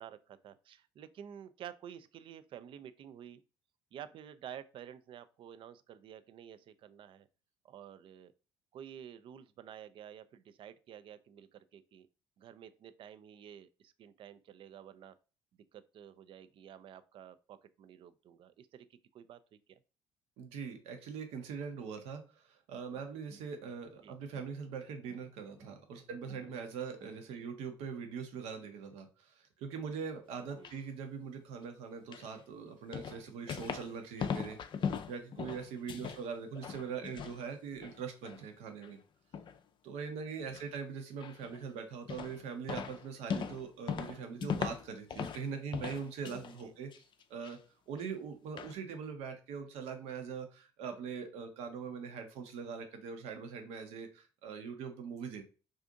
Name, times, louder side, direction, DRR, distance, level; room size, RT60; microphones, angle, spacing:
voice 1, 0.0-3.4 3.9-7.3 7.6-8.3 8.7-12.1 12.4-15.2 15.7-19.8 24.0-24.1 27.3-27.4 30.5-30.7 35.8-36.2 40.4-40.6 46.6-46.7, right 9 dB, 50° right, 0.4 m, -51 dB
voice 2, 20.4-39.0 39.8-46.9 47.3-47.6 47.9-55.4, right 6 dB, 70° right, 0.7 m, -42 dB
sound 1, 23.3-24.7 25.0-27.6, right 3 dB, 30° right, 0.8 m, -62 dB
sound 2, 30.3-30.8 32.1-32.3 32.9-33.9 34.2-36.2 36.5-37.4 37.7-38.4 38.8-38.9 39.3-39.6 40.5-40.7 41.2-41.6 42.1-42.4 42.7-45.5 45.7-46.6 46.9-47.5 48.0-48.1 48.6-48.7, left 7 dB, 45° left, 0.4 m, -39 dB
2.5 x 2.5 x 3.7 m
hypercardioid pair, 60°, 11 cm